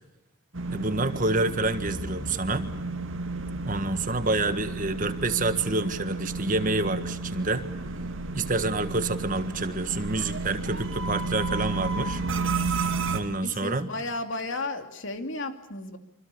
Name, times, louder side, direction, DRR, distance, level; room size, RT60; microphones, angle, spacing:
sound 1, 0.5-13.2, right 3 dB, 65° right, 2.5 m, -32 dB
voice 1, 0.7-2.7 3.6-7.6 8.3-12.2 13.1-13.9, right 2 dB, 40° right, 9 dB, 1.6 m, -28 dB
voice 2, 13.2-16.0, left 2 dB, 60° left, 6 dB, 2.8 m, -34 dB
26.5 x 26.0 x 7.1 m, 0.92 s
head